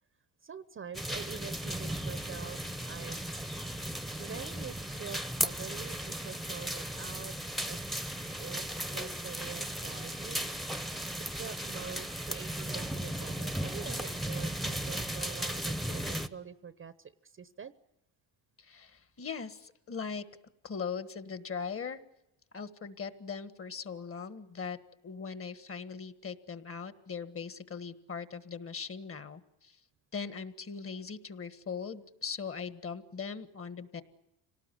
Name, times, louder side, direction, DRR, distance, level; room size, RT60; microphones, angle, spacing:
voice 1, 0.4-2.6 2.9-3.4 4.2-7.9 8.4-10.5 11.2-17.7, right 7 dB, 30° right, 14 dB, 0.9 m, -45 dB
sound 1, 0.9-16.3, right 1 dB, ahead, 1.0 m, -36 dB
voice 2, 18.6-20.2 20.6-22.0 22.5-24.8 25.0-29.8 30.1-34.0, left 6 dB, 30° left, 13 dB, 1.6 m, -40 dB
26.5 x 19.0 x 9.8 m, 0.91 s
cardioid pair, 115°, 43 cm